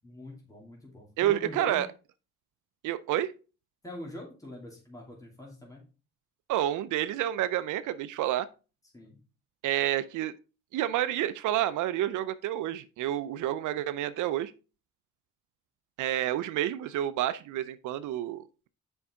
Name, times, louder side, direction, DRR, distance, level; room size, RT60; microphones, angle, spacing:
voice 1, 0.0-1.8 3.8-5.8 8.9-9.2, left 1 dB, 10° left, 2.6 m, -43 dB
voice 2, 1.2-1.9 2.8-3.3 6.5-8.5 9.6-10.3 10.7-14.5 16.0-18.7, right 12 dB, 80° right, 0.6 m, -29 dB
7.1 x 5.4 x 3.6 m
cardioid pair, 90°, 30 cm